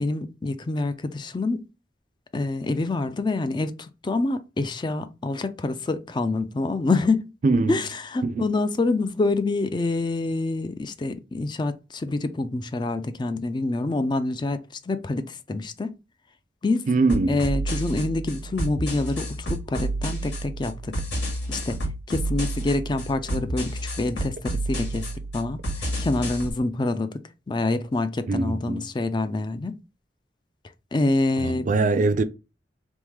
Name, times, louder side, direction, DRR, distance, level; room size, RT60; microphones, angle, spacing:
voice 1, 0.0-1.6 2.3-7.3 7.7-14.6 14.9-15.9 16.6-16.9 17.3-20.9 21.5-21.8 22.1-25.1 25.3-27.2 27.5-29.8 30.9-31.7, left 2 dB, 25° left, 0.4 m, -26 dB
voice 2, 7.4-7.8 8.2-8.5 16.9-17.4 28.3-28.9 31.4-32.2, right 3 dB, 45° right, 0.4 m, -22 dB
sound 1, 17.1-26.5, right 1 dB, 85° left, 2.1 m, -30 dB
3.5 x 3.0 x 3.2 m
head